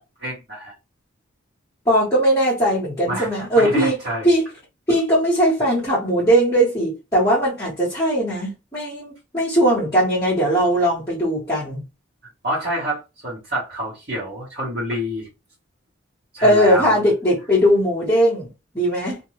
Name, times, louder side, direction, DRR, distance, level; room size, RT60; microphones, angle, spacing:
voice 1, 0.2-0.7 3.1-4.3 12.4-15.3 16.3-17.0, equal, 50° right, 1.2 m, -27 dB
voice 2, 1.8-4.0 4.2-4.4 4.9-11.8 16.4-18.5 18.7-19.2, equal, 15° left, 1.0 m, -19 dB
2.6 x 2.2 x 3.0 m
head